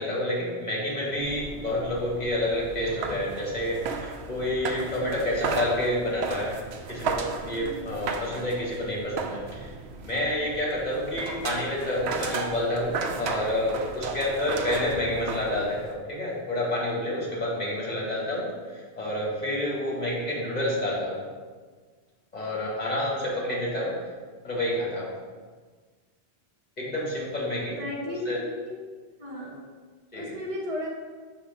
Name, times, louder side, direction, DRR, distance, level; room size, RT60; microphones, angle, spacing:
voice 1, 0.0-6.6 6.9-9.7 10.0-18.5 19.0-21.2 22.3-23.9 24.4-25.1 26.8-27.8 28.2-28.4 30.1-30.3, left 1 dB, 40° left, -5 dB, 1.5 m, -29 dB
sound 1, 1.1-15.9, right 5 dB, 85° right, 0.8 m, -35 dB
voice 2, 7.6-7.9 27.8-28.8 29.2-29.6 30.1-30.9, left 1 dB, 30° right, -6 dB, 1.4 m, -34 dB
6.9 x 2.8 x 5.1 m, 1.5 s
omnidirectional pair, 1.1 m